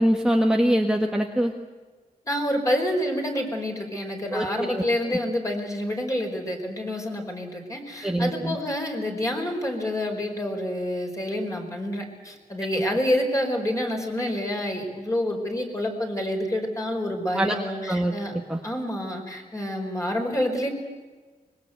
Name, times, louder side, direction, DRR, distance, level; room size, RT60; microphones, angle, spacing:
voice 1, 0.0-1.5 4.3-4.8 8.0-8.6 17.3-17.6 17.9-18.6, equal, 5° right, 2 dB, 1.6 m, -23 dB
voice 2, 2.3-18.3 18.6-20.7, left 1 dB, 20° left, 2 dB, 5.1 m, -28 dB
25.5 x 21.5 x 8.1 m, 1.3 s
wide cardioid pair, 115°, 15 cm